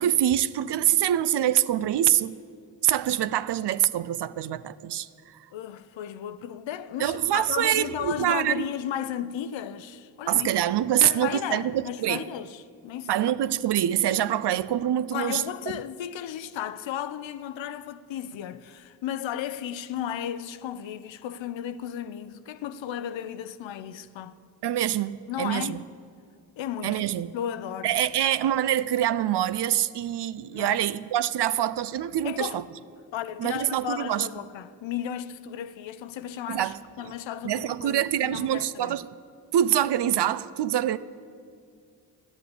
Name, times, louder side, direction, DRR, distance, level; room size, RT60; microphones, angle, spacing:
voice 1, 0.0-2.4 2.8-5.1 7.0-8.7 10.3-12.3 13.1-15.4 24.6-25.8 26.8-27.3 27.8-32.6 33.4-34.3 36.5-36.8 37.4-39.1 39.5-41.0, right 11 dB, 60° right, 0.6 m, -25 dB
voice 2, 5.5-10.5 11.0-13.3 15.1-24.4 25.3-25.8 26.6-27.0 27.3-27.9 30.5-30.8 32.2-32.6 33.1-39.0, left 10 dB, 65° left, 0.7 m, -34 dB
11.0 x 8.0 x 8.3 m
supercardioid pair, 40°, 48 cm